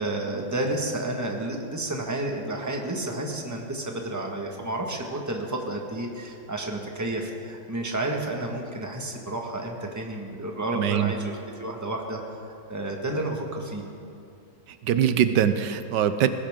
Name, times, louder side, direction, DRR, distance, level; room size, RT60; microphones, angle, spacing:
voice 1, 0.0-12.2 12.7-13.8, right 1 dB, 10° right, 1 dB, 1.4 m, -31 dB
voice 2, 10.7-11.1 14.8-16.3, right 9 dB, 80° right, 10 dB, 1.3 m, -22 dB
20.0 x 16.5 x 3.7 m, 2.5 s
omnidirectional pair, 1.9 m